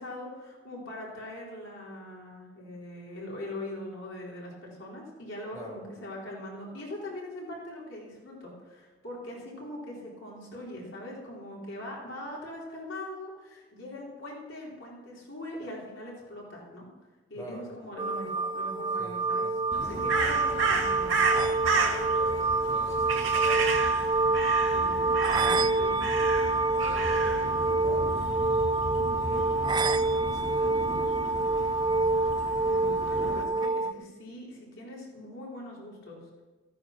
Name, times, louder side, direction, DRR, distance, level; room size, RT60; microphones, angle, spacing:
voice 1, 0.0-16.9 17.3-21.2 24.7-26.0 32.7-36.3, left 1 dB, 75° left, -4 dB, 4.1 m, -41 dB
voice 2, 17.3-17.7 19.0-20.4 21.7-23.7 26.7-28.1 28.8-29.6 30.0-30.9, equal, 15° left, -4 dB, 4.6 m, -45 dB
sound 1, 18.0-33.9, right 3 dB, 20° right, 0.3 m, -27 dB
Crow, 19.7-33.4, right 3 dB, 85° right, 2.4 m, -33 dB
16.5 x 9.4 x 6.0 m, 1.2 s
head